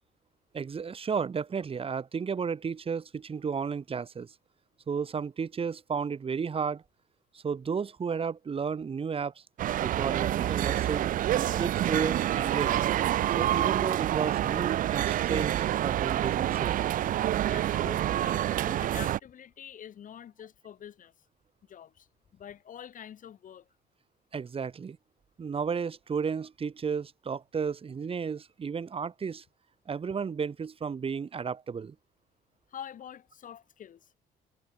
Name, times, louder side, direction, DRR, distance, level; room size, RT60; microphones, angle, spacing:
voice 1, 0.5-4.3 4.9-6.8 7.3-9.4 9.8-12.8 13.4-16.8 24.3-25.0 25.4-29.4 29.9-31.9, right 6 dB, 35° right, 4.7 m, -33 dB
sound 1, 9.6-19.2, right 12 dB, 55° right, 0.6 m, -27 dB
voice 2, 17.4-21.1 21.7-22.1 22.3-23.7 32.7-34.2, left 9 dB, 50° left, 7.5 m, -46 dB
cardioid pair, 110°, 17 cm